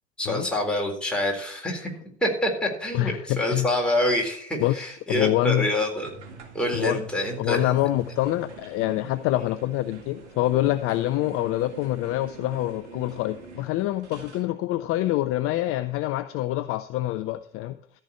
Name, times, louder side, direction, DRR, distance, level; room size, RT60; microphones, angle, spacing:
voice 1, 0.2-1.9 2.2-6.1 6.5-7.7, left 1 dB, 5° left, -1 dB, 3.8 m, -26 dB
voice 2, 2.9-3.7 4.6-5.7 6.7-7.0 7.4-17.8, left 15 dB, 40° left, 13 dB, 0.6 m, -26 dB
sound 1, 6.0-14.5, right 5 dB, 75° right, 2.1 m, -45 dB
13.5 x 4.6 x 8.1 m, 0.62 s
figure-of-eight pair, 70°, 35 cm